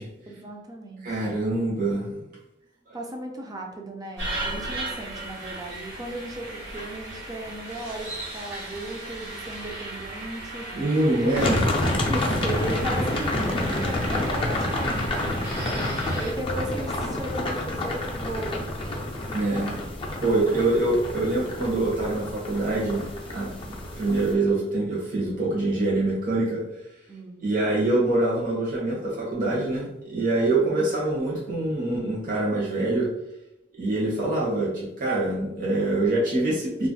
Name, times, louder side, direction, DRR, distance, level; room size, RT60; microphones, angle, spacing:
voice 1, 0.3-1.2 2.9-10.7 11.2-11.3 12.1-15.4 16.1-18.6 20.3-20.6 27.1-27.4, right 1 dB, 20° right, 2 dB, 0.4 m, -36 dB
voice 2, 1.0-2.3 2.9-3.0 10.7-11.6 19.3-19.8 20.2-26.6 27.4-33.1 33.8-36.9, right 2 dB, 50° right, -5 dB, 0.8 m, -25 dB
sound 1, 4.2-16.3, right 2 dB, 75° right, 0.9 m, -36 dB
sound 2, 11.4-24.3, left 1 dB, 30° left, 0.5 m, -28 dB
2.4 x 2.0 x 3.8 m, 0.86 s
head